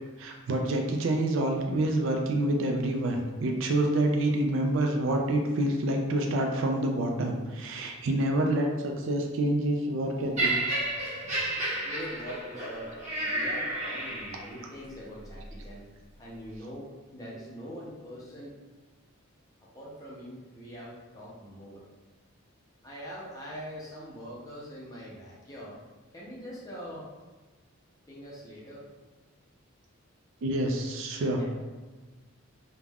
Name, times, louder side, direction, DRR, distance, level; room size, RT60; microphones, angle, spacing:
voice 1, 0.2-10.5 30.4-31.4, right 1 dB, 65° right, 2 dB, 0.4 m, -27 dB
Laughter, 10.4-14.6 15.4-15.6, right 2 dB, 35° right, 0.8 m, -31 dB
voice 2, 11.6-15.8 16.2-16.9 17.1-18.5 19.7-21.8 22.8-25.8 26.1-27.1 28.1-28.8 31.3-31.5, equal, 15° left, -6 dB, 0.6 m, -43 dB
2.4 x 2.2 x 3.3 m, 1.3 s
head